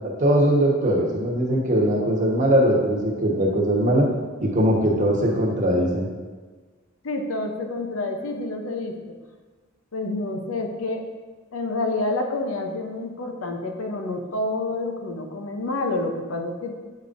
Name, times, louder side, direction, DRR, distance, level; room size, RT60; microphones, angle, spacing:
voice 1, 0.2-4.0 4.4-6.1, right 1 dB, 40° right, -2 dB, 1.1 m, -20 dB
voice 2, 7.0-9.0 9.9-11.1 11.5-16.8, left 2 dB, 80° left, 4 dB, 0.7 m, -28 dB
7.6 x 5.3 x 2.6 m, 1.4 s
head